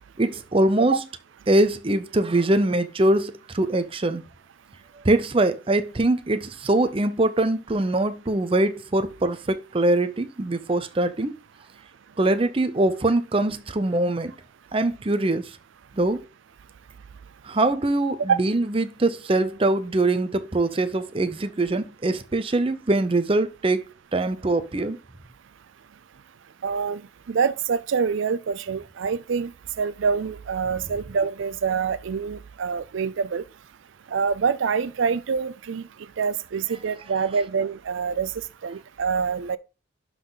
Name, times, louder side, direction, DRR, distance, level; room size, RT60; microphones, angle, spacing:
voice 1, 0.2-1.0 1.5-4.2 5.0-11.3 12.2-14.3 14.7-15.5 15.9-16.2 17.4-23.8 24.1-25.0, right 2 dB, 25° right, 0.6 m, -23 dB
voice 2, 26.6-27.0 27.3-29.5 29.8-33.4 34.1-35.8 36.2-38.3 38.6-39.6, right 6 dB, 70° right, 0.4 m, -26 dB
11.5 x 3.9 x 3.9 m
head